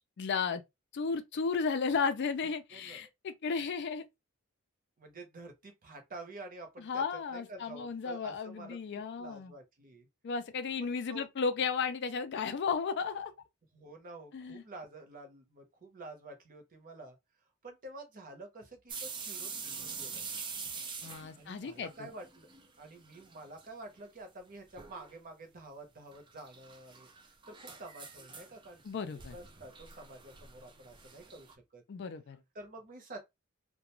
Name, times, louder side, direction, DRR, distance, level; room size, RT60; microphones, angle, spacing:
voice 1, 0.2-0.6 0.9-4.0 6.8-9.5 10.2-13.3 14.3-14.6 21.0-22.1 28.8-29.4 31.9-32.4, left 5 dB, 50° left, 0.4 m, -34 dB
voice 2, 2.7-3.0 5.0-10.1 10.8-11.3 13.7-17.2 17.6-20.2 20.5-20.6 21.3-22.5 22.8-27.1 27.5-31.8 32.5-33.2, right 2 dB, 40° right, 0.7 m, -49 dB
sound 1, 18.9-22.7 23.0-23.7 24.0-24.1 24.8-25.1 26.1-31.5, right 5 dB, 20° right, 0.4 m, -45 dB
2.4 x 2.2 x 2.9 m
head